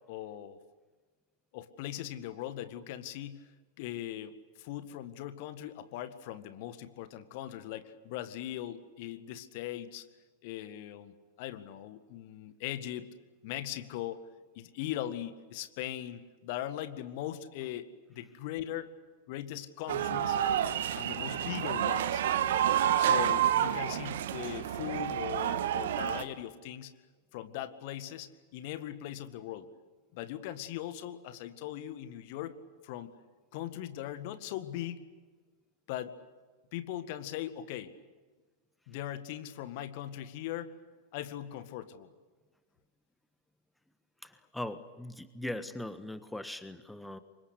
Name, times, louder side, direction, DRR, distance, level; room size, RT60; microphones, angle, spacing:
voice 1, 0.1-0.6 1.5-3.5 3.8-10.1 10.4-13.1 13.4-14.2 14.6-18.9 19.3-20.4 20.9-22.2 23.0-26.9 27.3-29.7 30.1-32.6 32.8-33.1 33.5-35.1 35.9-36.1 36.7-37.9 38.9-40.7 41.1-42.1, left 12 dB, 50° left, 12 dB, 1.8 m, -40 dB
sound 1, 19.9-26.2, right 10 dB, 60° right, 1.6 m, -29 dB
voice 2, 44.2-47.2, left 1 dB, 5° left, 12 dB, 1.4 m, -40 dB
28.0 x 25.0 x 8.4 m, 1.4 s
figure-of-eight pair, 90°, 0 cm